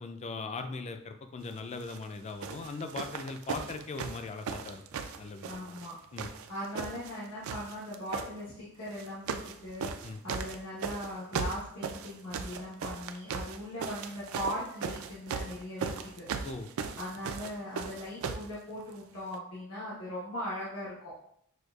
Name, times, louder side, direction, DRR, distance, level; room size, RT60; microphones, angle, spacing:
voice 1, 0.0-4.8 5.2-5.7 6.1-6.3 10.0-10.2 16.4-16.7, left 3 dB, 30° left, 7 dB, 0.3 m, -39 dB
sound 1, 1.8-2.0 2.4-5.9 6.2-7.2 7.4-8.3 8.9-9.6 9.8-18.5 19.3-19.4, right 5 dB, 75° right, 0.3 m, -37 dB
voice 2, 5.4-5.9 6.5-9.9 10.2-16.3 17.0-21.1, equal, 90° left, -9 dB, 1.1 m, -39 dB
6.2 x 2.4 x 2.3 m, 0.70 s
head